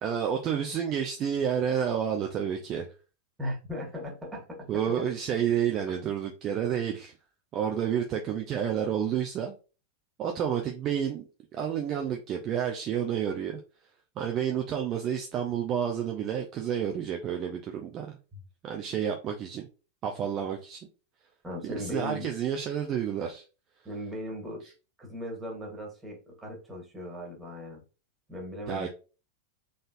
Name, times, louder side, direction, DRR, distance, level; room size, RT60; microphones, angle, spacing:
voice 1, 0.0-2.9 4.7-7.1 7.5-9.6 10.2-13.6 14.2-18.2 18.6-19.7 20.0-20.8 21.6-23.4 28.7-28.9, right 8 dB, 35° right, 0.6 m, -30 dB
voice 2, 3.4-5.1 18.3-18.4 21.4-22.3 23.8-24.6 25.0-27.8 28.3-28.9, equal, 10° right, 2.0 m, -38 dB
3.9 x 3.8 x 2.5 m
figure-of-eight pair, 90°, 0 cm